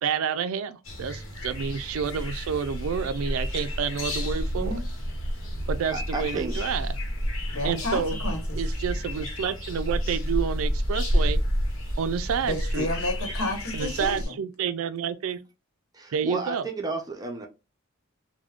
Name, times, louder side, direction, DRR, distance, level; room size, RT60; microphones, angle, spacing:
voice 1, 0.0-4.8 5.7-7.0 7.6-8.2 8.6-11.4 12.0-12.9 13.7-15.4 16.1-16.7, right 7 dB, 70° right, 0.3 m, -29 dB
sound 1, 0.8-14.3, equal, 65° left, 1.1 m, -30 dB
voice 2, 5.9-6.6 15.9-17.5, right 3 dB, 20° right, 0.5 m, -32 dB
voice 3, 7.5-8.6 12.5-14.3, left 1 dB, 90° left, 1.1 m, -31 dB
3.5 x 2.2 x 2.3 m
head